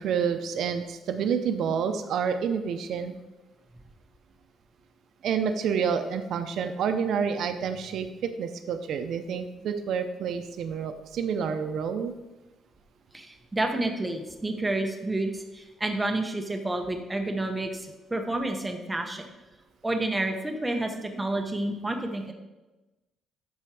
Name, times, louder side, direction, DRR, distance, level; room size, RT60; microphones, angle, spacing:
voice 1, 0.0-3.1 5.2-12.1, right 7 dB, 65° right, 8 dB, 0.6 m, -28 dB
voice 2, 13.1-19.2 19.8-22.3, right 2 dB, 10° right, 3 dB, 1.0 m, -30 dB
12.5 x 4.3 x 4.8 m, 1.1 s
cardioid pair, 155°, 0 cm